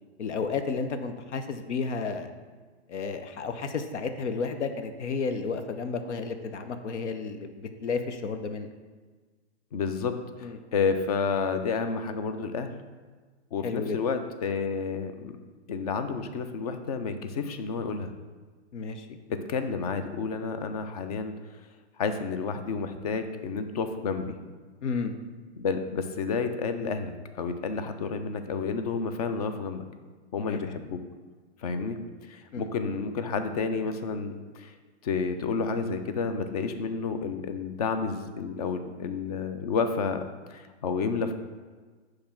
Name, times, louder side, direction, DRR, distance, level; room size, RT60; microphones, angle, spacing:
voice 1, 0.2-2.3 2.9-8.7 10.4-10.6 13.6-14.0 18.7-19.2 24.8-25.2 30.4-30.6 32.5-32.8, left 4 dB, 90° left, 8 dB, 0.8 m, -32 dB
voice 2, 9.7-12.7 13.5-15.4 15.7-18.1 19.3-21.3 22.0-24.4 25.6-29.8 30.3-31.0 31.6-34.7 35.0-40.2 40.5-41.3, left 5 dB, 35° left, 8 dB, 0.4 m, -30 dB
6.6 x 3.2 x 5.8 m, 1.4 s
hypercardioid pair, 160°, 34 cm